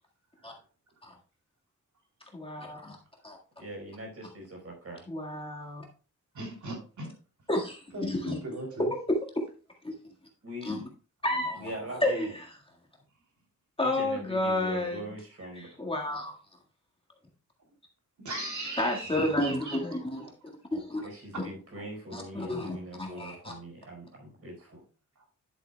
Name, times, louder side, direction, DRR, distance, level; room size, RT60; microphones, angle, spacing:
voice 1, 2.3-3.0 3.2-3.4 5.1-5.9 7.5-8.4 9.1-9.5 9.8-9.9 10.6-10.8 11.2-11.7 12.0-12.5 13.8-15.0 15.5-16.3 18.8-20.3 20.7-21.0 21.4-21.5 22.1-23.5, left 1 dB, 15° left, 0 dB, 1.7 m, -31 dB
voice 2, 3.6-5.0 10.4-10.7 11.5-12.3 13.8-15.7 19.1-19.5 21.0-24.8, right 1 dB, 50° right, 1 dB, 4.4 m, -42 dB
voice 3, 6.3-7.1 7.9-8.9 18.2-20.5 22.5-22.6 23.1-23.3 25.2-25.3, right 1 dB, 65° right, 0 dB, 3.2 m, -39 dB
10.5 x 8.0 x 2.2 m, 0.36 s
wide cardioid pair, 130°, 31 cm